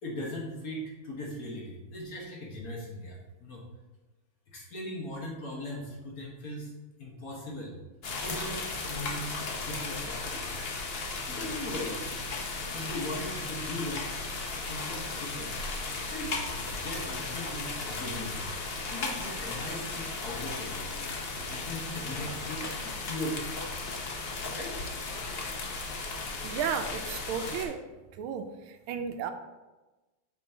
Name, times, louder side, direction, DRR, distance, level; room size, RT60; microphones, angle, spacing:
voice 1, 0.0-3.6 4.5-6.7 7.0-7.8 8.2-10.5 11.3-12.1 12.6-14.1 14.7-15.6 16.0-16.4 16.8-18.4 18.9-20.7 21.3-23.6 24.5-24.8, left 1 dB, 50° left, -3 dB, 1.6 m, -39 dB
sound 1, 8.0-27.7, left 3 dB, 75° left, 0.5 m, -36 dB
voice 2, 26.4-27.8 28.1-29.3, right 7 dB, 85° right, 7 dB, 1.4 m, -34 dB
8.2 x 5.5 x 2.8 m, 1.1 s
omnidirectional pair, 2.3 m